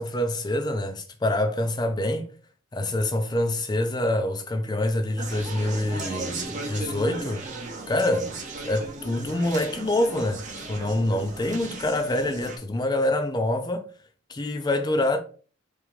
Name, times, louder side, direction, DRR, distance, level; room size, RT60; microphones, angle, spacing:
voice 1, 0.0-2.3 2.7-7.4 7.9-8.4 8.6-13.9 14.3-15.2, left 1 dB, 20° left, 0.4 m, -26 dB
Conversation, 5.2-12.6, right 3 dB, 35° right, 0.8 m, -36 dB
3.5 x 3.5 x 3.1 m
head